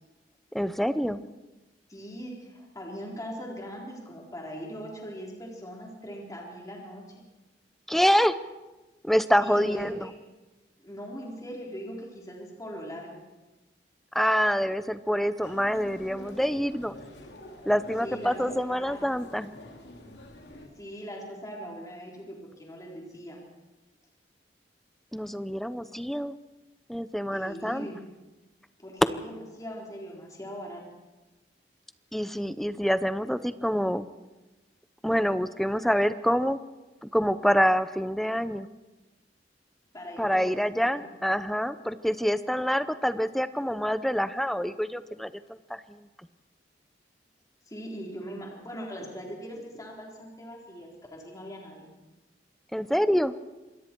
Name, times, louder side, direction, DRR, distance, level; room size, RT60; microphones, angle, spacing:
voice 1, 0.5-1.2 7.9-8.3 9.0-10.0 14.1-16.9 17.7-19.5 25.1-26.3 26.9-27.9 32.1-34.1 35.0-36.6 37.0-38.7 40.2-46.0 52.7-53.3, equal, ahead, 13 dB, 0.7 m, -26 dB
voice 2, 1.9-7.0 9.4-10.1 10.8-13.2 18.0-18.4 18.7-19.1 20.8-23.4 27.3-28.0 28.8-30.8 39.9-41.1 47.7-51.9, equal, 20° left, -2 dB, 3.9 m, -40 dB
Human voice, 15.4-20.7, left 1 dB, 70° left, 3.1 m, -46 dB
26.5 x 21.5 x 4.6 m, 1.1 s
head